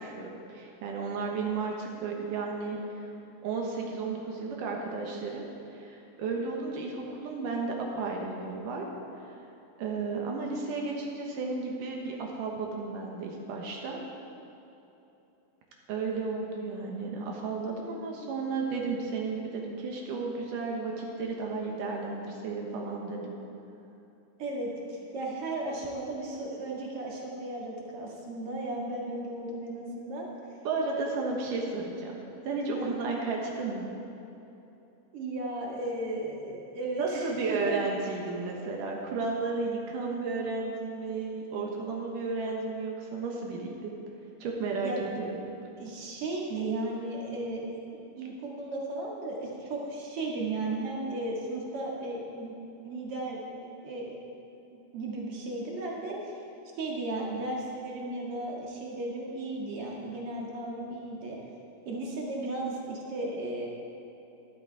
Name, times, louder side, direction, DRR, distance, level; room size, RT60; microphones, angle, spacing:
voice 1, 0.0-3.1 3.4-5.4 5.7-8.9 9.2-9.4 9.8-14.0 15.9-23.3 30.6-32.2 32.4-33.9 37.0-43.9 44.4-45.3, right 4 dB, 75° right, 0 dB, 2.7 m, -33 dB
voice 2, 24.4-30.3 32.7-33.0 35.1-37.8 44.8-45.0 45.8-52.5 52.8-54.2 54.9-56.4 56.8-61.4 61.9-63.7, right 2 dB, 50° right, -2 dB, 2.4 m, -35 dB
12.0 x 12.0 x 4.7 m, 2.9 s
omnidirectional pair, 3.8 m